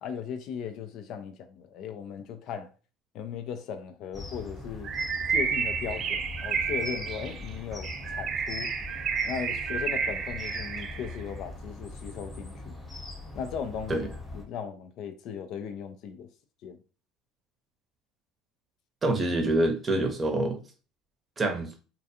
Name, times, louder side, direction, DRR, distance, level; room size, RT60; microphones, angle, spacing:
voice 1, 0.0-2.7 3.1-4.9 5.3-8.7 9.2-12.8 13.3-14.1 14.3-16.3 16.6-16.8, left 7 dB, 60° left, 0.4 m, -37 dB
sound 1, 4.1-14.5, left 2 dB, 15° left, 0.8 m, -41 dB
Bird, 4.8-11.2, right 6 dB, 45° right, 0.3 m, -31 dB
voice 2, 19.0-20.6 21.4-21.7, right 2 dB, 30° right, 0.7 m, -26 dB
2.4 x 2.2 x 2.7 m
supercardioid pair, 90°, 0 cm